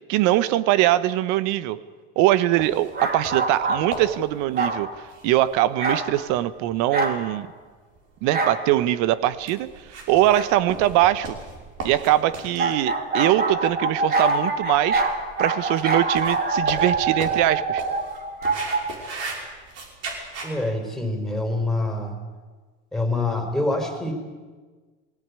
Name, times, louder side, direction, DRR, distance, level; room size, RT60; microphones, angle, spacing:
voice 1, 0.1-1.8 2.2-7.5 8.2-11.4 11.8-15.0 15.4-17.8, right 14 dB, 70° right, 15 dB, 1.2 m, -22 dB
sound 1, 2.6-20.5, right 3 dB, 50° right, 5.8 m, -38 dB
sound 2, 2.9-3.9 4.5-4.8 5.8-6.1 6.9-7.2 8.3-8.6 10.3-10.5 12.6-18.8, right 3 dB, 30° right, 3.5 m, -24 dB
voice 2, 20.4-22.2 22.9-24.1, left 2 dB, ahead, 4 dB, 4.7 m, -25 dB
21.0 x 17.0 x 9.8 m, 1.4 s
supercardioid pair, 105°, 30 cm